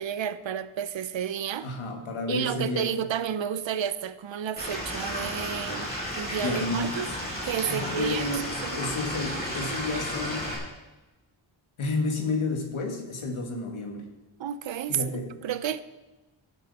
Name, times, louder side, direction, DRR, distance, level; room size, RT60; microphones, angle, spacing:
voice 1, 0.0-1.7 2.3-7.1 7.4-8.3 8.6-8.8 14.4-15.0 15.4-15.8, right 9 dB, 70° right, 14 dB, 0.6 m, -31 dB
voice 2, 1.6-3.0 6.4-7.1 7.7-10.5 11.8-14.1 14.9-15.5, left 3 dB, 90° left, 3 dB, 1.9 m, -31 dB
Stream / Liquid, 4.6-10.6, equal, 20° left, 3.1 m, -33 dB
17.5 x 7.4 x 4.2 m, 1.1 s
wide cardioid pair, 170°, 48 cm